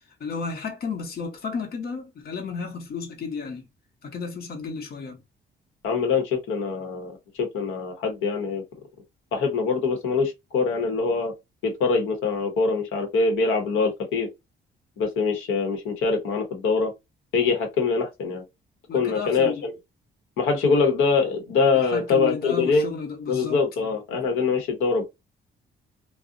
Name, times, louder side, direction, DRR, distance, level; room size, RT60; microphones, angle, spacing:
voice 1, 0.2-3.7 4.0-5.2 18.9-19.7 21.7-23.6, left 4 dB, 50° left, 0.8 m, -33 dB
voice 2, 5.8-8.6 9.3-11.3 11.6-14.3 15.0-16.9 17.3-18.4 18.9-19.7 20.4-22.9 23.3-25.0, left 4 dB, 85° left, 0.9 m, -24 dB
2.5 x 2.0 x 2.5 m
cardioid pair, 90°, 20 cm